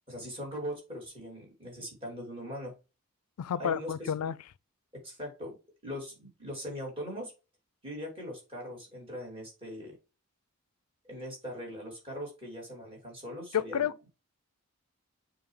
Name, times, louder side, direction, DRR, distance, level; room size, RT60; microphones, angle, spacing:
voice 1, 0.1-2.7 3.6-3.9 4.2-4.3 5.0-5.5 5.8-7.3 7.8-10.0 11.1-13.9, equal, 25° right, 3.0 m, -40 dB
voice 2, 3.4-4.4 13.5-14.1, left 8 dB, 85° left, 0.4 m, -30 dB
7.0 x 3.0 x 4.8 m
head